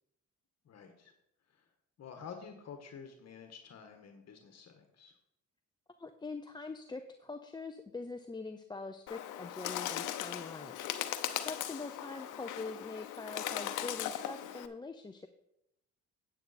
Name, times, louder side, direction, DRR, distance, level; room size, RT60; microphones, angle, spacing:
voice 1, 0.6-1.1 1.5-1.6 2.0-5.1, left 6 dB, 60° left, 5 dB, 1.4 m, -50 dB
voice 2, 6.0-10.9 11.4-15.3, left 3 dB, 15° left, 6 dB, 0.6 m, -43 dB
Bird, 9.1-14.7, left 11 dB, 90° left, 0.7 m, -38 dB
9.1 x 8.5 x 4.2 m, 0.80 s
cardioid pair, 90°, 30 cm